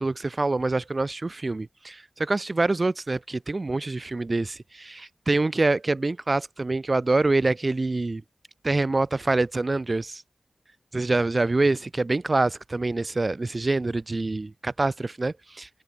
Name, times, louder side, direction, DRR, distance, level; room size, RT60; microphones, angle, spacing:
voice 1, 0.0-8.2 8.6-10.2 10.9-15.7, right 2 dB, 30° right, 2.5 m, -25 dB
wide cardioid pair, 115°, 0 cm